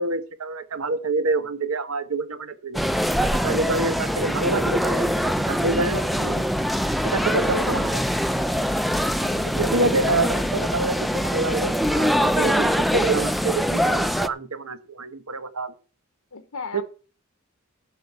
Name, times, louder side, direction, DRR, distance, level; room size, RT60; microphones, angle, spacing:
voice 1, 0.0-2.8 3.2-6.4 7.0-8.0 9.5-15.7 16.7-16.8, right 3 dB, 85° right, 1.2 m, -27 dB
sound 1, 2.7-14.3, equal, ahead, 0.5 m, -23 dB
voice 2, 8.9-9.9 16.3-16.8, left 4 dB, 80° left, 1.0 m, -36 dB
11.5 x 5.2 x 8.1 m
head